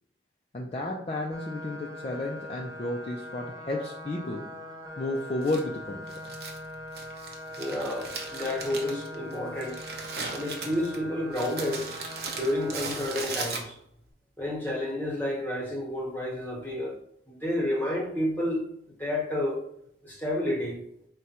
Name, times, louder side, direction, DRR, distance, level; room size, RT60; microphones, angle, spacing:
voice 1, 0.5-4.5 5.0-6.0 6.4-6.5, left 2 dB, 30° left, -1 dB, 0.4 m, -32 dB
sound 1, 1.3-13.2, left 1 dB, 20° right, 0.6 m, -42 dB
Crumpling crinkling, 5.4-14.0, right 4 dB, 55° right, 0.7 m, -39 dB
voice 2, 7.6-9.8 10.3-11.9 12.3-13.8 14.4-16.9 17.3-18.6 19.0-19.6 20.0-20.8, left 1 dB, 10° left, -2 dB, 1.0 m, -30 dB
4.8 x 2.2 x 4.1 m, 0.73 s
head